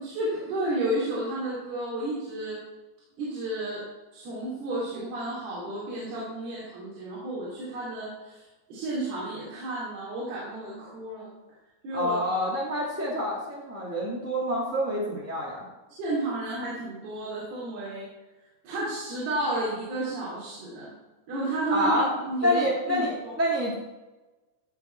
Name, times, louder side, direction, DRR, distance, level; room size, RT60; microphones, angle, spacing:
voice 1, 0.0-2.6 3.2-3.8 4.1-8.4 8.7-11.3 11.8-12.2 16.0-18.0 18.6-20.9 21.3-22.0 22.3-23.3, right 1 dB, 80° right, -8 dB, 4.9 m, -32 dB
voice 2, 11.9-15.7 21.7-22.1 22.4-23.7, equal, 5° right, -5 dB, 1.5 m, -27 dB
16.5 x 6.9 x 4.5 m, 1.1 s
omnidirectional pair, 4.4 m